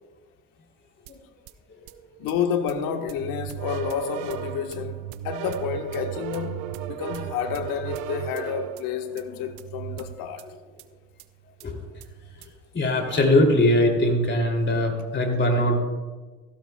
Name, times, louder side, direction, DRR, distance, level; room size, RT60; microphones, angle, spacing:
sound 1, 1.1-1.2 1.5-1.6 1.9-2.3 2.7-2.8 3.1-10.4 10.8-10.9 11.2-11.3 11.6-12.5, right 13 dB, 90° right, 0.7 m, -36 dB
voice 1, 2.2-10.5, left 7 dB, 75° left, 1.3 m, -30 dB
voice 2, 12.7-15.8, left 1 dB, 30° left, 2.7 m, -21 dB
17.0 x 15.5 x 2.2 m
supercardioid pair, 95°, 35 cm